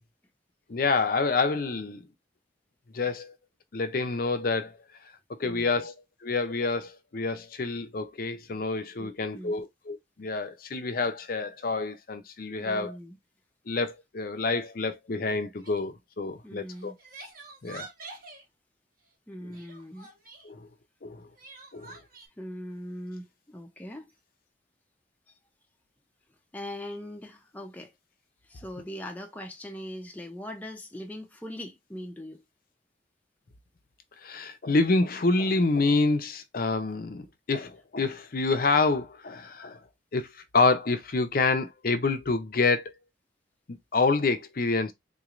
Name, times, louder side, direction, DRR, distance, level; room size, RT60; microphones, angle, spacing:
voice 1, 0.7-2.0 2.9-3.4 3.7-4.8 5.4-6.0 6.2-13.0 13.7-16.9 17.6-17.9 20.4-20.7 21.0-21.3 21.7-22.0 34.2-39.8 40.1-42.9 43.7-44.9, left 3 dB, 50° left, 0.6 m, -27 dB
voice 2, 5.4-5.8 9.0-9.6 12.6-13.2 16.4-17.0 19.3-20.1 22.4-24.1 26.5-27.9 28.5-32.4, equal, 10° left, 0.5 m, -41 dB
Crying sobbing, 15.6-15.9 16.7-18.4 19.5-20.5 21.4-22.3, right 3 dB, 50° right, 1.4 m, -46 dB
3.9 x 3.0 x 2.5 m
head